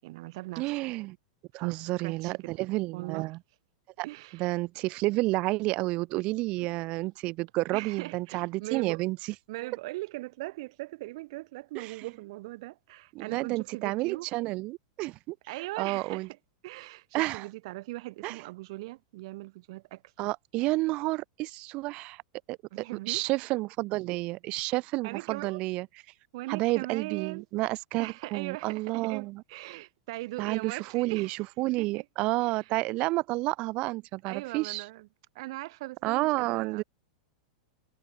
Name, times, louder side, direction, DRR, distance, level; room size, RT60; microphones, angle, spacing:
voice 1, 0.0-0.9 1.5-2.5 2.9-3.3 4.0-4.5 6.6-6.7 7.7-9.0 9.5-14.3 15.5-16.4 16.6-20.0 22.7-23.2 25.0-25.6 26.3-27.4 28.0-31.4 31.8-32.0 32.5-32.7 34.2-35.1 35.3-36.8, right 20 dB, 45° right, 5.2 m, -40 dB
voice 2, 0.6-1.2 1.5-3.4 4.0-4.1 4.3-9.2 11.7-11.9 13.1-15.3 15.8-16.3 17.1-17.4 18.2-18.4 20.2-22.2 22.5-25.9 26.5-29.4 30.4-34.8 36.0-36.8, right 21 dB, 30° right, 1.0 m, -30 dB
supercardioid pair, 175°, 4 cm